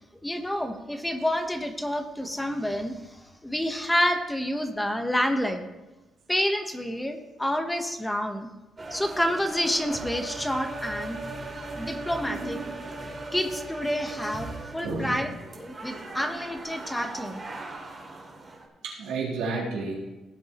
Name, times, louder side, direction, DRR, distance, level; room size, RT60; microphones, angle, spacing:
voice 1, 0.2-5.7 6.3-8.5 8.9-11.2 11.7-12.6 13.3-17.4, equal, 10° left, 6 dB, 1.2 m, -28 dB
sound 1, 8.8-18.7, right 2 dB, 30° right, 2.7 m, -38 dB
voice 2, 12.3-12.8 14.8-15.2 18.8-20.1, right 3 dB, 90° right, -4 dB, 3.4 m, -31 dB
17.0 x 8.2 x 3.0 m, 1.1 s
cardioid pair, 90°, 0 cm